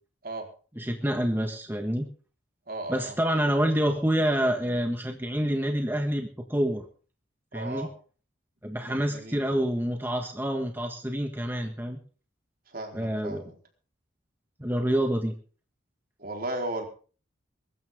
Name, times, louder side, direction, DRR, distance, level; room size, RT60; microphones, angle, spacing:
voice 1, 0.8-2.1 2.9-6.9 7.5-7.9 8.6-12.0 12.9-13.5 14.6-15.3, equal, 10° right, 4 dB, 1.6 m, -27 dB
voice 2, 2.7-3.1 7.5-7.9 8.8-9.4 12.7-13.5 16.2-16.9, right 2 dB, 50° right, 2 dB, 4.4 m, -35 dB
22.5 x 13.0 x 3.7 m, 0.40 s
head